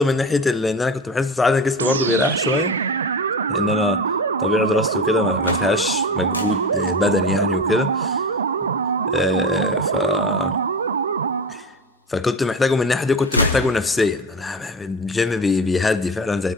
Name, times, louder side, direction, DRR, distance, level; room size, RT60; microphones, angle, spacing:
voice 1, 0.0-2.8 3.5-4.1 4.4-8.2 9.1-10.6 11.5-11.7 12.1-16.5, left 3 dB, 10° left, 0.3 m, -22 dB
sound 1, 1.8-11.6, right 6 dB, 70° right, 0.4 m, -23 dB
sound 2, 5.2-11.1 11.6-12.5 12.8-14.4, left 2 dB, 80° left, 1.1 m, -29 dB
22.5 x 9.0 x 2.8 m
figure-of-eight pair, 90°, 0 cm